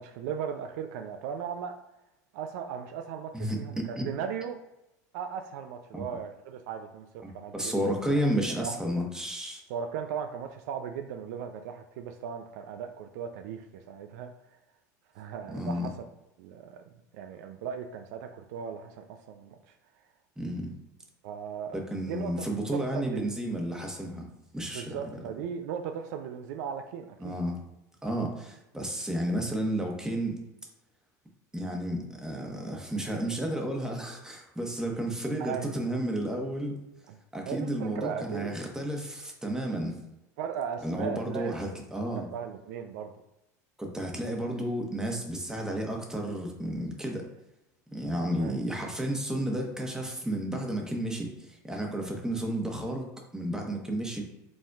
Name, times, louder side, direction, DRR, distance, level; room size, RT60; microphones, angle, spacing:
voice 1, 0.0-1.8 2.3-4.6 5.1-7.7 8.1-8.2 8.6-8.8 9.7-14.3 15.1-15.9 16.4-16.8 17.1-19.6 21.2-21.8 22.1-22.4 22.7-23.3 24.7-27.4 35.4-35.7 37.1-37.2 37.4-38.5 40.4-41.5 42.2-43.1 48.4-48.6, right 7 dB, 70° right, 6 dB, 0.4 m, -37 dB
voice 2, 3.3-4.1 5.9-6.0 7.5-9.6 15.5-15.9 20.4-20.7 21.7-24.3 24.5-25.0 27.2-27.6 28.0-30.4 31.5-36.8 37.3-40.0 40.8-42.3 43.8-47.3 47.9-54.2, right 1 dB, 5° right, 1 dB, 1.1 m, -32 dB
5.1 x 3.4 x 2.4 m, 0.92 s
hypercardioid pair, 85°, 9 cm